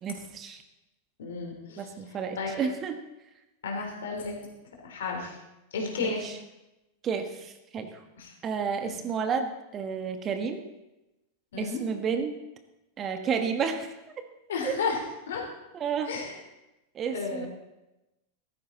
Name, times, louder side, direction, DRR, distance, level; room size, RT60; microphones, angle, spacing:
voice 1, 0.0-0.6 1.8-2.9 6.0-6.4 7.0-8.0 8.4-10.6 11.6-12.4 13.0-13.9 14.6-14.7 15.7-16.1 16.9-17.5, right 6 dB, 25° right, 7 dB, 1.3 m, -31 dB
voice 2, 1.2-1.9 2.4-2.6 3.6-4.4 4.8-5.4 5.7-6.2 8.2-8.3 11.5-11.8 14.5-15.0 15.3-15.4 16.0-16.3 17.1-17.5, left 4 dB, 60° left, 1 dB, 3.7 m, -32 dB
15.0 x 13.5 x 4.0 m, 0.97 s
figure-of-eight pair, 90°, 0 cm